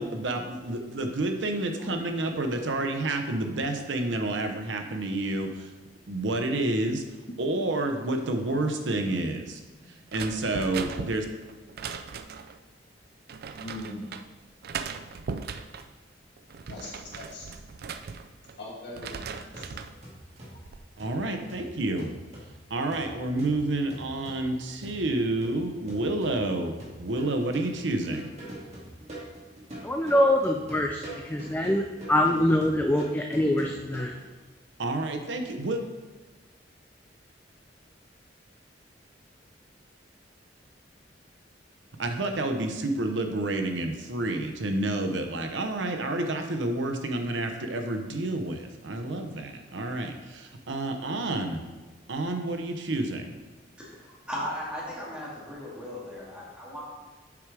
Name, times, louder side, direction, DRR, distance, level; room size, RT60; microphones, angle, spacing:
voice 1, 0.0-5.7 6.1-7.0 7.4-9.6 10.1-11.3 21.0-22.1 22.7-28.3 34.8-35.8 42.0-51.6 52.1-53.3, right 2 dB, 80° right, 5 dB, 0.8 m, -29 dB
sound 1, 10.1-12.6 13.3-14.2 14.6-15.9 16.4-18.6 18.9-20.0 20.4-20.8, right 5 dB, 55° right, 0.4 m, -38 dB
voice 2, 13.6-14.1 16.7-17.5 18.6-19.7 19.9-20.0 20.3-20.4, left 2 dB, 70° left, -4 dB, 2.2 m, -41 dB
sound 2, 19.1-34.2, right 1 dB, 40° right, 2.0 m, -44 dB
voice 3, 29.8-34.1, left 1 dB, 10° left, 3 dB, 0.4 m, -24 dB
voice 4, 53.8-56.8, equal, 5° right, -7 dB, 2.3 m, -37 dB
7.1 x 4.8 x 4.8 m, 1.2 s
head